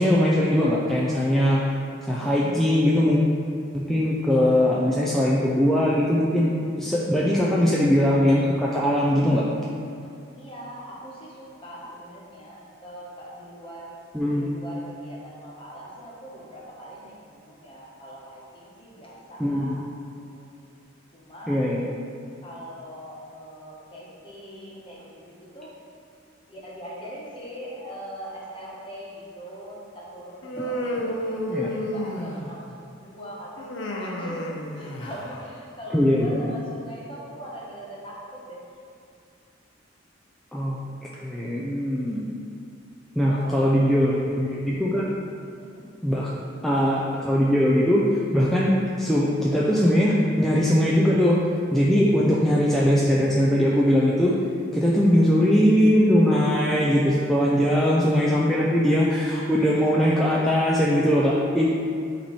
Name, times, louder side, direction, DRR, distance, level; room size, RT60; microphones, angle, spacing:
voice 1, 0.0-1.6 2.1-3.2 3.7-6.5 6.8-9.4 14.1-14.5 19.4-19.8 21.5-21.8 31.5-31.7 35.9-36.4 40.5-42.2 43.2-45.1 46.0-46.3 46.6-48.1 48.3-51.4 51.7-54.3 54.7-61.7, equal, ahead, -6 dB, 0.4 m, -21 dB
voice 2, 10.3-13.9 14.3-19.8 20.2-20.4 21.1-21.6 22.4-25.7 26.5-38.2 38.5-38.6 41.1-41.3 43.2-43.8 45.6-45.9, equal, 30° left, -6 dB, 1.3 m, -41 dB
Human voice, 30.4-32.7 33.6-35.4, equal, 70° left, 0.6 m, -31 dB
8.8 x 3.1 x 4.2 m, 2.4 s
head